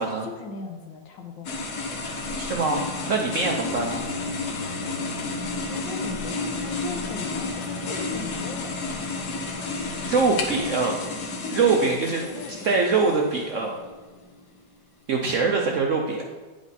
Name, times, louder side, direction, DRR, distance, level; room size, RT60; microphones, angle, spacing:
voice 1, 0.0-1.5 5.7-8.9 11.4-11.7 12.1-12.9, left 3 dB, 80° left, 4 dB, 1.6 m, -38 dB
sound 1, 1.4-13.7, left 3 dB, 60° left, 1.4 m, -32 dB
voice 2, 2.3-4.0 9.8-11.0 11.5-12.2 12.6-13.7 15.1-16.2, right 4 dB, 65° right, 1 dB, 0.8 m, -23 dB
sound 2, 2.7-14.9, left 3 dB, 20° left, 0.6 m, -38 dB
9.3 x 4.8 x 4.1 m, 1.3 s
omnidirectional pair, 2.0 m